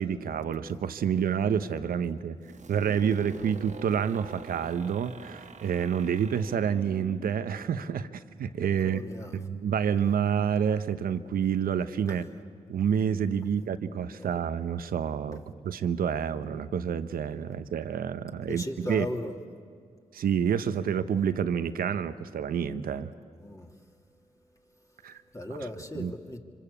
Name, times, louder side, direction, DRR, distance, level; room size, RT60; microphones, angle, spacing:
voice 1, 0.0-2.4 2.7-8.1 8.4-9.0 9.3-12.3 12.7-15.4 15.6-18.6 18.9-19.1 20.1-23.1 25.0-25.2 25.9-26.1, right 8 dB, 80° right, 1.0 m, -28 dB
sound 1, 2.4-8.1, right 4 dB, 55° right, 1.5 m, -45 dB
voice 2, 8.8-9.3 12.1-12.2 14.2-14.3 15.3-15.4 18.4-19.4 23.4-23.7 25.3-26.4, left 1 dB, 20° left, 2.8 m, -37 dB
25.5 x 25.5 x 8.5 m
supercardioid pair, 45°, 15 cm